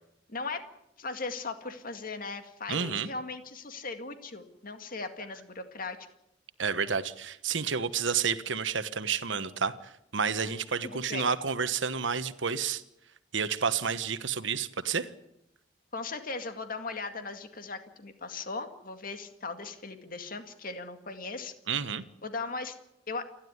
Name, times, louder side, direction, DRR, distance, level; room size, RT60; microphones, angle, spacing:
voice 1, 0.3-0.7 1.0-6.0 10.4-10.6 10.8-11.3 15.9-21.5 22.2-22.7 23.1-23.3, left 3 dB, 50° left, 7 dB, 2.1 m, -38 dB
voice 2, 2.7-3.1 6.6-12.8 13.3-15.1 21.7-22.0, right 6 dB, 75° right, 12 dB, 1.2 m, -30 dB
29.0 x 11.5 x 9.6 m, 0.82 s
head